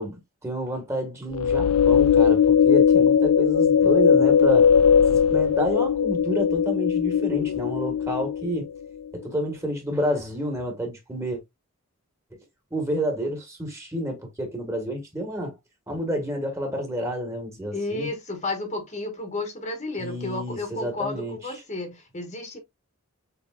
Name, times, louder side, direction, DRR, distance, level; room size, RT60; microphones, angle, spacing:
voice 1, 0.0-4.7 5.1-8.7 9.1-11.4 12.3-12.4 12.7-15.6 15.9-18.1 20.0-21.4, equal, 15° right, 1.5 m, -29 dB
sound 1, 1.3-8.7, left 7 dB, 80° left, 0.3 m, -19 dB
voice 2, 17.7-22.6, left 2 dB, 30° left, 1.3 m, -32 dB
6.7 x 3.3 x 2.4 m
head